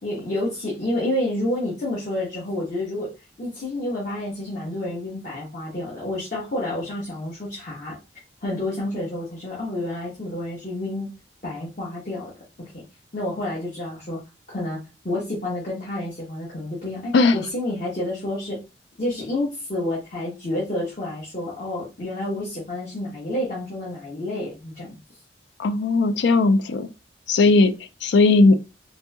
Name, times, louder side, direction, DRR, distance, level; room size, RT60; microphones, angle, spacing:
voice 1, 0.0-3.1 3.4-8.0 8.4-11.1 11.4-12.3 12.7-12.8 13.1-14.2 14.5-14.8 15.0-18.6 19.0-25.0, left 1 dB, 40° left, 1.1 m, -29 dB
voice 2, 25.6-26.9 27.3-27.7 28.0-28.6, left 3 dB, 65° left, 0.4 m, -17 dB
4.0 x 2.7 x 2.3 m
head